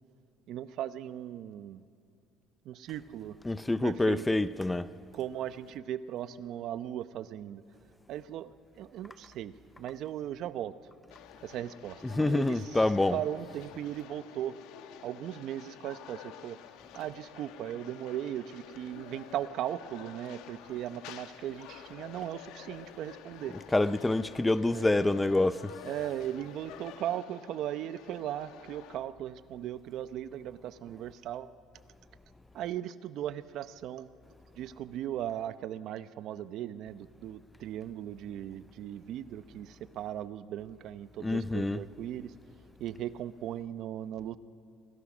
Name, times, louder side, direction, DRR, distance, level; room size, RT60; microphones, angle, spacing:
voice 1, 0.5-1.8 2.6-3.4 3.8-4.4 5.1-7.6 8.1-10.8 11.4-12.8 13.1-14.6 15.0-16.6 16.9-23.6 24.7-24.9 25.8-31.5 32.5-34.1 34.5-42.3 42.8-44.4, right 11 dB, 60° right, 0.7 m, -38 dB
voice 2, 3.5-4.9 12.1-13.2 23.7-25.7 41.2-41.8, left 2 dB, 10° left, 0.4 m, -27 dB
sound 1, 11.1-29.0, left 10 dB, 80° left, 1.1 m, -50 dB
26.5 x 17.5 x 6.2 m
cardioid pair, 130°, 0 cm